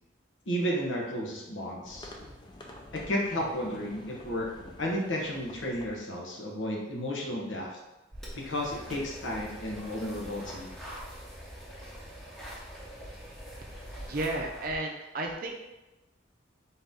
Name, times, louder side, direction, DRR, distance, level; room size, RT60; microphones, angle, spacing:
voice 1, 0.5-2.1 2.9-4.5 4.8-7.7 8.3-10.7, equal, 90° left, -2 dB, 0.9 m, -33 dB
sound 1, 1.8-6.0, left 1 dB, 25° left, 0.4 m, -49 dB
sound 2, 8.1-14.7, equal, 5° left, 0.8 m, -44 dB
voice 2, 14.1-15.6, right 2 dB, 50° right, 1 dB, 0.6 m, -33 dB
3.9 x 2.7 x 3.6 m, 1.0 s
head